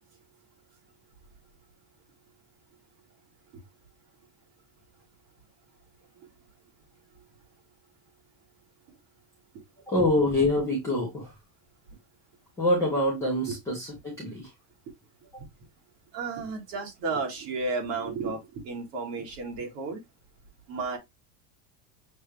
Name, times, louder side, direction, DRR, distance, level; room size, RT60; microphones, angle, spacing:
voice 1, 9.9-11.3 12.6-14.5 15.3-15.4, left 1 dB, 5° left, 0.3 m, -26 dB
voice 2, 16.1-20.0 20.7-21.0, right 4 dB, 50° right, 1.7 m, -33 dB
6.3 x 2.2 x 3.2 m
cardioid pair, 170°, 48 cm